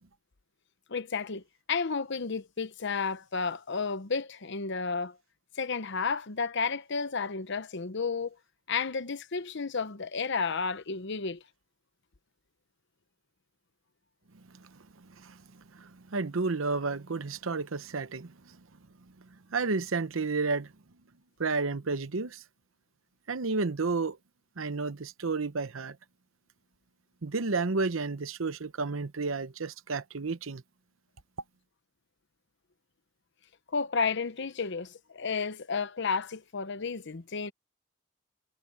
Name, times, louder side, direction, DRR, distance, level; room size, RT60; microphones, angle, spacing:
voice 1, 0.9-1.4 1.7-5.2 5.6-8.3 8.7-11.4 33.7-37.5, left 5 dB, 60° left, 0.9 m, -32 dB
voice 2, 14.6-18.6 19.5-20.7 21.4-22.4 23.3-24.2 24.6-26.0 27.2-30.6, right 4 dB, 80° right, 0.9 m, -32 dB
head